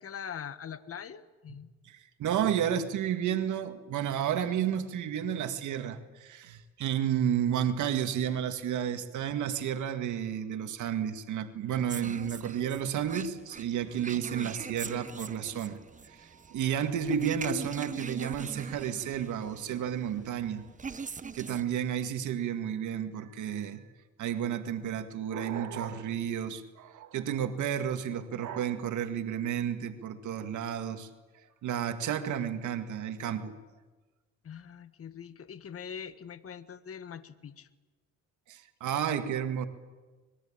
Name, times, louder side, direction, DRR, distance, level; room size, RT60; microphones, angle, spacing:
voice 1, 0.0-1.7 13.8-13.9 34.4-37.7, left 7 dB, 50° left, 12 dB, 1.6 m, -43 dB
voice 2, 1.9-15.8 16.1-20.7 21.3-23.8 24.2-31.1 31.6-33.6 38.5-39.7, right 9 dB, 80° right, 8 dB, 2.1 m, -32 dB
sound 1, 11.9-21.6, right 5 dB, 25° right, 1.2 m, -42 dB
25.5 x 21.5 x 8.8 m, 1.3 s
cardioid pair, 90°, 30 cm